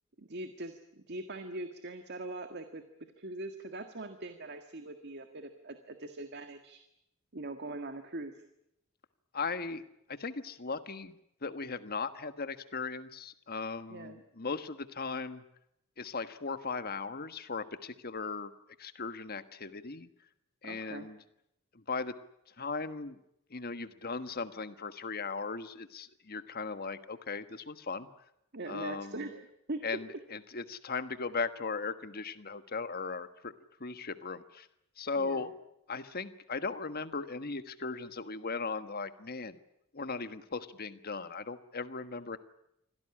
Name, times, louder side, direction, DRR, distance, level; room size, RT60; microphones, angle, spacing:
voice 1, 0.2-6.8 7.3-8.3 13.9-14.2 20.6-21.1 28.5-29.8 35.2-35.5, right 2 dB, 50° right, 7 dB, 1.7 m, -42 dB
voice 2, 9.3-11.2 11.4-15.4 16.0-18.5 18.8-20.1 20.6-21.2 21.7-22.2 22.5-23.2 23.5-28.1 28.7-29.3 29.8-34.7 35.0-35.5 35.9-39.6 39.9-42.4, left 4 dB, 45° left, 11 dB, 1.4 m, -38 dB
25.5 x 17.0 x 9.9 m, 0.81 s
head